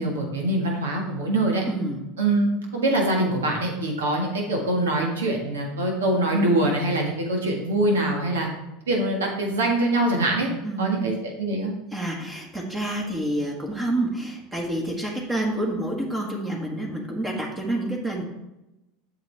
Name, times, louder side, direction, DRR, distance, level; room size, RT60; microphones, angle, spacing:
voice 1, 0.0-1.6 2.2-8.5 8.9-10.5 10.8-11.7, right 1 dB, 85° right, 0 dB, 1.8 m, -24 dB
voice 2, 1.7-2.0 10.6-11.1 11.9-18.2, right 1 dB, 20° right, -1 dB, 1.6 m, -28 dB
8.1 x 6.5 x 3.5 m, 0.95 s
hypercardioid pair, 85°, 0 cm